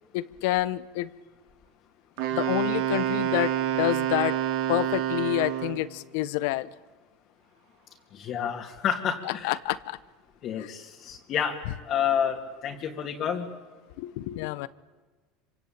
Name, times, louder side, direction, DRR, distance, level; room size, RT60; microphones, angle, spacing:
voice 1, 0.1-1.1 2.3-4.4 4.7-6.7 9.2-10.0 10.6-10.7 14.0-14.7, left 17 dB, 75° left, 17 dB, 1.0 m, -28 dB
Wind instrument woodwind instrument, 2.2-5.9, right 11 dB, 75° right, 3.0 m, -28 dB
voice 2, 8.1-9.6 10.4-11.6 11.9-13.5, left 8 dB, 45° left, -1 dB, 2.6 m, -29 dB
26.0 x 25.0 x 8.9 m, 1.3 s
supercardioid pair, 120°, 0 cm